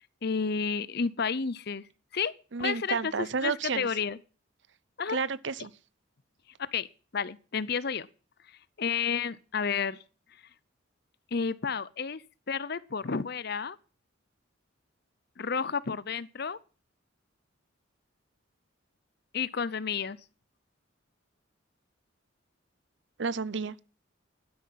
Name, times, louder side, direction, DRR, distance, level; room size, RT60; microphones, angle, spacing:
voice 1, 0.2-1.8 2.1-2.3 2.6-4.2 5.0-5.2 6.6-6.9 7.1-8.1 8.8-10.0 11.3-12.2 12.5-13.8 15.4-16.6 19.3-20.2, left 6 dB, 50° left, 0.7 m, -31 dB
voice 2, 2.5-3.9 5.1-5.7 23.2-23.7, right 5 dB, 60° right, 0.7 m, -31 dB
12.0 x 9.8 x 5.7 m
head